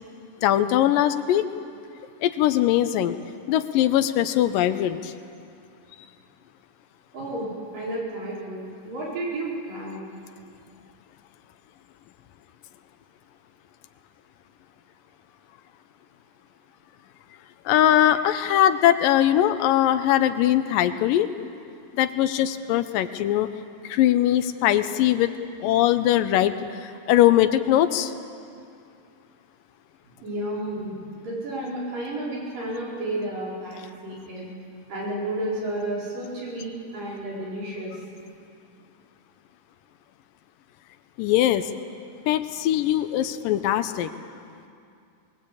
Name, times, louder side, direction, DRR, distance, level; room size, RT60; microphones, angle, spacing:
voice 1, 0.4-1.5 2.2-3.1 3.5-5.1 17.7-21.3 22.0-23.5 23.8-25.3 25.6-26.5 26.8-28.1 41.2-41.7 42.3-44.1, left 12 dB, 85° left, 10 dB, 2.5 m, -21 dB
voice 2, 7.1-10.0 30.2-34.5 34.9-37.9, right 1 dB, 75° right, -5 dB, 6.5 m, -32 dB
22.0 x 20.5 x 8.6 m, 2.5 s
omnidirectional pair, 3.9 m